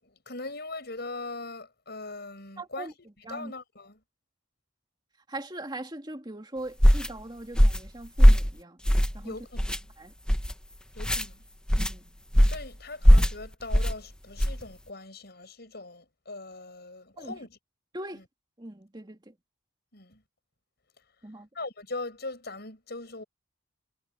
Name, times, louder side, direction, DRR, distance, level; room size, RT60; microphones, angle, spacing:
voice 1, 0.0-4.0 9.2-9.9 10.9-11.4 12.5-17.6 18.1-18.2 19.9-20.2 21.5-23.2, left 2 dB, 55° left, 6.5 m, -40 dB
voice 2, 2.6-2.9 3.2-3.5 5.3-8.8 9.1-9.4 10.0-10.1 11.8-12.2 17.2-17.4 17.9-18.2 18.6-19.3 21.2-21.5, right 1 dB, 20° right, 2.4 m, -40 dB
sound 1, 6.8-7.1 7.6-7.9 8.2-8.5 8.9-9.2 9.6-9.8 10.3-10.5 11.0-11.3 11.7-11.9 12.3-12.7 13.0-13.3 13.7-13.9 14.4-14.6, equal, 5° left, 0.9 m, -19 dB
head